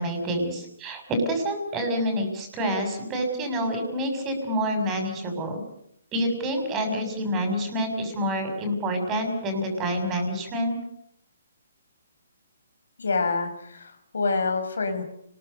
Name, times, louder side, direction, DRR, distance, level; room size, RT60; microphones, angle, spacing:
voice 1, 0.0-5.6 6.1-10.8, equal, 20° right, 5 dB, 6.5 m, -27 dB
voice 2, 13.0-15.0, left 4 dB, 85° left, 7 dB, 5.2 m, -27 dB
30.0 x 21.5 x 6.7 m, 0.71 s
hypercardioid pair, 160°, 0 cm